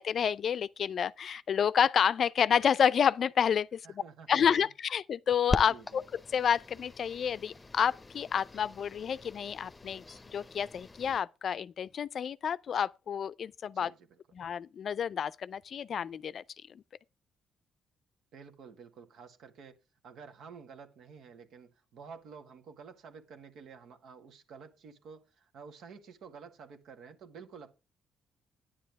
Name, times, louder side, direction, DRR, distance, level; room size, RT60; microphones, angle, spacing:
voice 1, 0.0-4.0 4.3-6.0 6.3-10.0 10.3-13.9 14.3-16.4 16.7-16.8, left 8 dB, 55° left, 0.5 m, -29 dB
voice 2, 3.8-4.7 5.7-6.0 13.7-14.2 18.3-19.8 20.0-27.7, right 6 dB, 75° right, 1.8 m, -51 dB
sound 1, 5.5-11.2, left 3 dB, 20° left, 0.8 m, -40 dB
10.5 x 9.9 x 3.5 m
cardioid pair, 90°, 0 cm